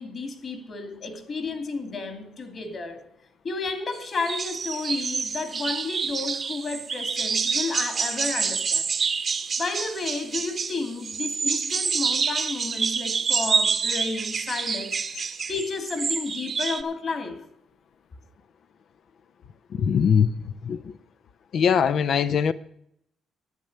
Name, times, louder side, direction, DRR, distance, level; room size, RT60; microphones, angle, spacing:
voice 1, 0.0-3.0 3.4-8.9 9.6-17.4, left 3 dB, 45° left, 2.6 m, -32 dB
sound 1, 3.9-4.0 4.2-16.8, right 5 dB, 45° right, 0.9 m, -27 dB
voice 2, 19.7-20.9 21.5-22.5, left 7 dB, 65° left, 0.5 m, -22 dB
11.0 x 8.8 x 6.6 m
cardioid pair, 90°, 0 cm